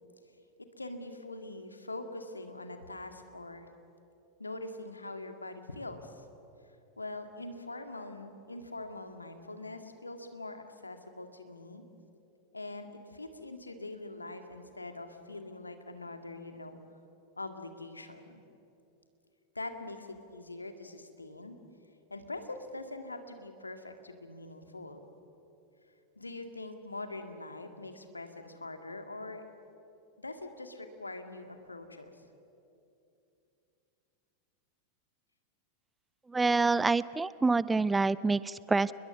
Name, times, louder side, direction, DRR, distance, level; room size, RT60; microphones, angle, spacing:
voice 1, 0.6-3.7 4.4-6.2 7.0-11.8 12.5-16.8 17.4-18.4 19.5-21.6 22.1-25.0 26.2-29.4 30.2-32.1, left 2 dB, 80° left, 7 dB, 2.1 m, -43 dB
voice 2, 36.3-38.9, right 3 dB, 10° right, 19 dB, 0.4 m, -27 dB
28.5 x 21.5 x 6.9 m, 2.8 s
figure-of-eight pair, 90°, 0 cm